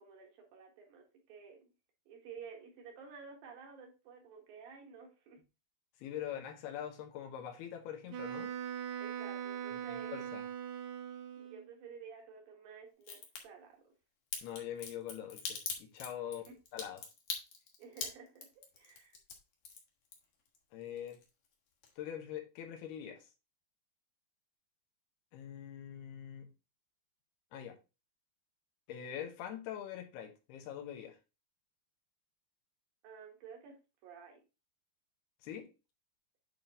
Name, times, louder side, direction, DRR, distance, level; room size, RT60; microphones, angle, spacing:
voice 1, 0.0-1.7 2.1-5.4 9.0-10.2 11.4-13.9 16.5-16.6 17.8-18.5 18.8-19.2 33.0-33.8 34.0-34.4, right 6 dB, 65° right, 3.2 m, -52 dB
voice 2, 6.0-8.5 9.9-10.4 14.4-16.4 16.7-17.0 20.7-21.2 22.0-23.3 25.3-26.5 27.5-27.8 28.9-31.2 35.4-35.7, left 10 dB, 75° left, 2.9 m, -43 dB
Wind instrument woodwind instrument, 8.1-11.7, right 9 dB, 90° right, 3.2 m, -41 dB
Crack, 13.0-13.4 14.3-20.6 20.9-21.5 21.8-21.9, left 5 dB, 55° left, 2.2 m, -42 dB
9.0 x 3.8 x 3.7 m
omnidirectional pair, 4.7 m